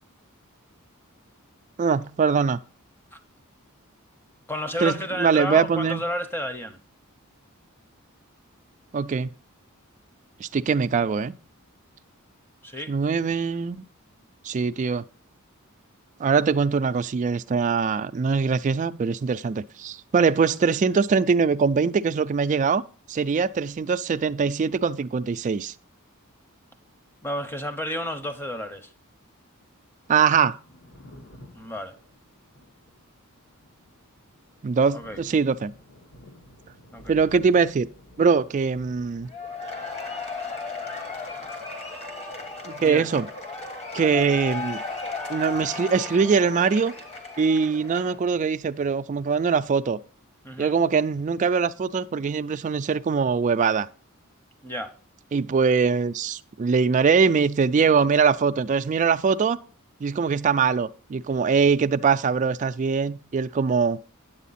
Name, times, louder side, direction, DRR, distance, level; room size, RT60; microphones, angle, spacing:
voice 1, 1.8-2.6 4.8-6.0 8.9-9.3 10.4-11.4 12.9-13.8 14.4-15.0 16.2-22.8 23.1-25.7 30.1-30.6 34.6-35.7 37.1-37.9 38.2-39.3 42.6-43.3 43.9-44.8 45.3-46.9 47.4-50.0 50.6-53.9 55.3-59.6 60.0-64.0, right 5 dB, 35° right, 0.3 m, -22 dB
voice 2, 4.5-6.8 12.6-12.9 27.2-28.9 31.5-31.9 34.9-35.2 36.9-37.2 42.8-43.1 50.4-50.7 54.6-54.9, left 1 dB, 10° left, 0.9 m, -31 dB
Thunder, 30.7-44.9 45.1-46.4, left 1 dB, 60° left, 1.9 m, -53 dB
Cheering / Applause / Crowd, 39.3-48.2, left 3 dB, 30° left, 1.4 m, -35 dB
9.2 x 8.0 x 4.1 m
head